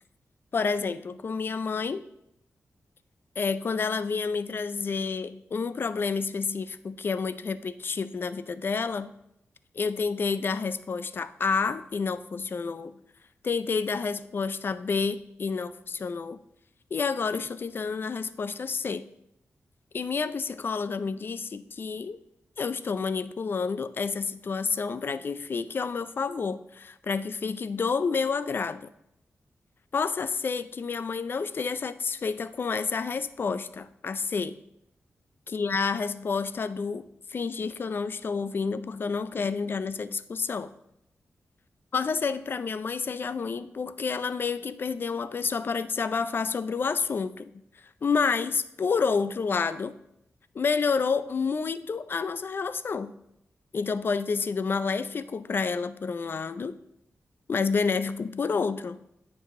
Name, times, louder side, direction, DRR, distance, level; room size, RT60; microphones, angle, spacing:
voice 1, 0.5-2.0 3.4-9.1 9.7-13.0 13.4-16.4 16.9-19.1 19.9-22.2 22.6-28.9 29.9-34.6 35.5-40.7 41.9-47.5 48.0-49.9 50.5-53.1 53.7-56.8 57.5-59.0, left 5 dB, 50° left, 13 dB, 0.4 m, -29 dB
9.2 x 4.8 x 3.6 m, 0.79 s
wide cardioid pair, 110°, 5 cm